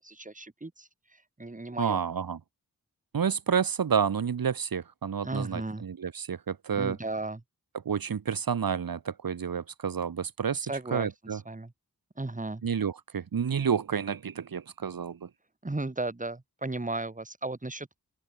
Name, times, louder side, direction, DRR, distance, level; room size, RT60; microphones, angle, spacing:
voice 1, 0.0-2.0 5.2-5.8 6.8-7.4 10.6-11.7 12.2-12.6 15.6-18.0, right 2 dB, 20° right, 1.9 m, -35 dB
voice 2, 1.8-2.4 3.1-7.0 7.8-10.6 10.9-11.4 12.6-15.3, right 7 dB, 75° right, 1.0 m, -29 dB
open air
wide cardioid pair, 75°, 35 cm